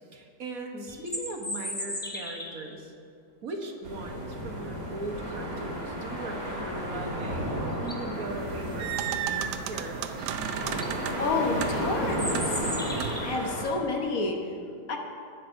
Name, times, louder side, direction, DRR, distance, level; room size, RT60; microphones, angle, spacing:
voice 1, 0.1-2.9 3.4-7.5 7.8-10.3, right 2 dB, 60° right, 2 dB, 1.4 m, -39 dB
voice 2, 0.7-1.0 11.2-12.7 13.2-14.5 14.9-15.0, left 3 dB, 60° left, 2 dB, 1.4 m, -30 dB
sound 1, 0.9-2.7 7.2-7.3 7.7-8.2 10.2-10.3 10.6-10.9 12.1-13.5, left 1 dB, 10° left, 0.7 m, -36 dB
sound 2, 3.8-13.6, equal, 35° right, 2.1 m, -33 dB
sound 3, 8.4-13.3, right 10 dB, 80° right, 1.2 m, -35 dB
18.5 x 10.0 x 2.6 m, 2.4 s
omnidirectional pair, 1.8 m